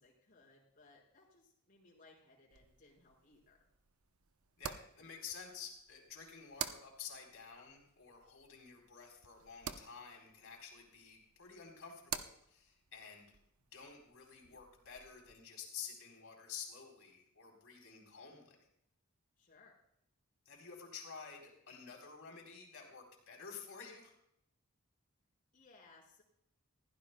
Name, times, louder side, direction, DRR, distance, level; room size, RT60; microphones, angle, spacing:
voice 1, 0.0-3.6 19.4-19.8 25.5-26.2, left 3 dB, 40° left, -3 dB, 5.2 m, -64 dB
sound 1, 2.5-15.3, right 8 dB, 90° right, 0.8 m, -50 dB
voice 2, 4.6-13.3 13.7-18.7 20.5-24.1, left 6 dB, 65° left, 1 dB, 4.1 m, -51 dB
21.5 x 15.5 x 2.3 m, 0.75 s
head